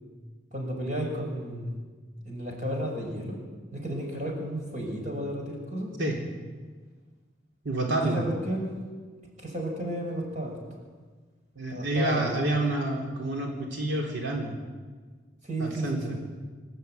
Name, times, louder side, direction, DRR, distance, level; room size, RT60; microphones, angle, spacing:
voice 1, 0.5-1.7 2.2-3.4 3.7-5.9 8.0-8.7 9.4-10.6 11.7-12.3 15.4-16.0, right 1 dB, 40° right, 0 dB, 6.2 m, -32 dB
voice 2, 7.6-8.2 11.6-14.5 15.6-16.2, right 2 dB, 90° right, -1 dB, 3.6 m, -28 dB
26.5 x 12.5 x 9.3 m, 1.4 s
head